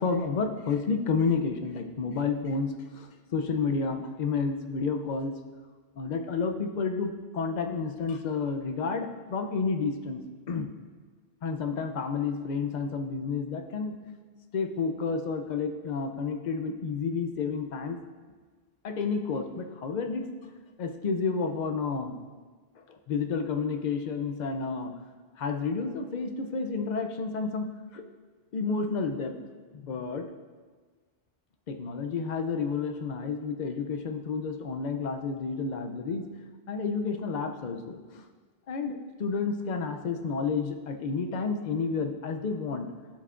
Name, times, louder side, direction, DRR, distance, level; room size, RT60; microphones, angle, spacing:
voice 1, 0.0-5.4 6.0-10.7 11.4-14.0 14.5-18.0 18.8-20.3 20.8-22.2 22.9-24.9 25.4-27.7 27.9-28.0 28.5-29.3 29.7-30.2 31.7-36.3 36.7-38.2 38.7-42.9, left 5 dB, 50° left, 6 dB, 0.6 m, -30 dB
13.0 x 5.6 x 2.5 m, 1.4 s
omnidirectional pair, 1.1 m